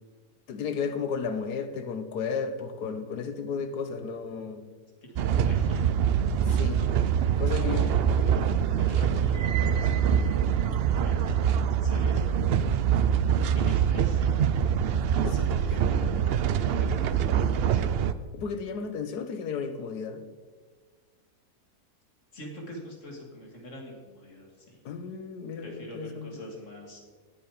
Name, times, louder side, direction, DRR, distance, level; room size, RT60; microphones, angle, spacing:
voice 1, 0.5-4.7 6.5-6.8 7.4-7.9 15.2-15.4 18.3-20.2 24.8-26.3, left 6 dB, 90° left, 10 dB, 1.6 m, -33 dB
voice 2, 5.2-6.1 7.4-12.6 13.4-14.2 15.0-17.9 22.3-24.8 25.6-27.0, equal, 50° left, 0 dB, 2.9 m, -43 dB
sound 1, 5.2-18.1, right 8 dB, 70° right, 0.5 m, -24 dB
19.5 x 7.3 x 5.1 m, 1.5 s
omnidirectional pair, 1.7 m